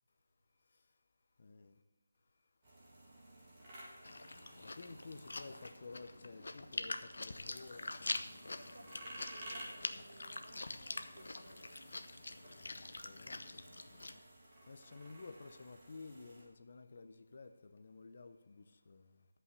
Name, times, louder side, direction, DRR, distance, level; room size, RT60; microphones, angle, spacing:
voice 1, 1.4-1.8 4.6-8.6 12.5-14.2 14.7-19.3, left 3 dB, 35° left, 0.6 m, -53 dB
sound 1, 2.6-16.4, right 1 dB, 15° right, 1.8 m, -55 dB
Chewing mastication, 4.0-14.1, left 2 dB, 60° left, 0.8 m, -45 dB
voice 2, 8.5-12.1, right 2 dB, 75° right, 1.9 m, -60 dB
12.0 x 5.6 x 8.2 m
figure-of-eight pair, 180°, 0 cm